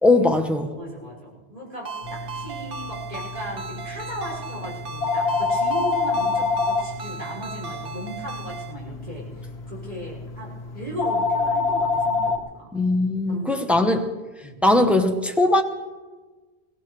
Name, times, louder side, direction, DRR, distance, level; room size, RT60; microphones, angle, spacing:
voice 1, 0.0-0.7 12.7-14.1 14.6-15.6, left 2 dB, ahead, 4 dB, 0.9 m, -19 dB
voice 2, 0.8-12.7 13.3-13.8 14.4-14.6, right 1 dB, 40° right, -4 dB, 6.4 m, -37 dB
Ringtone, 1.9-8.7, right 5 dB, 55° right, 1.1 m, -36 dB
sound 1, 2.0-12.4, left 4 dB, 75° left, 1.3 m, -27 dB
22.5 x 18.5 x 3.3 m, 1.3 s
omnidirectional pair, 1.1 m